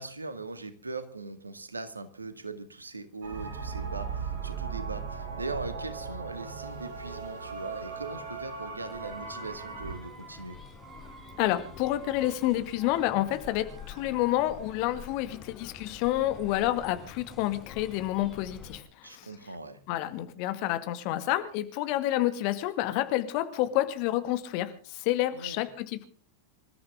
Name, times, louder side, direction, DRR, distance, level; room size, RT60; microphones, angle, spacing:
voice 1, 0.0-10.6 19.0-19.8 25.3-25.6, right 3 dB, 80° right, 11 dB, 2.1 m, -40 dB
sound 1, 3.2-10.0, right 5 dB, 55° right, 4.3 m, -37 dB
sound 2, 7.4-17.1 17.4-17.5, right 4 dB, 15° right, 7.8 m, -53 dB
sound 3, 8.8-18.8, left 6 dB, 20° left, 4.8 m, -48 dB
voice 2, 11.4-19.3 19.9-26.0, left 14 dB, 45° left, 10 dB, 2.1 m, -29 dB
26.5 x 13.5 x 3.8 m, 0.41 s
figure-of-eight pair, 90°, 0 cm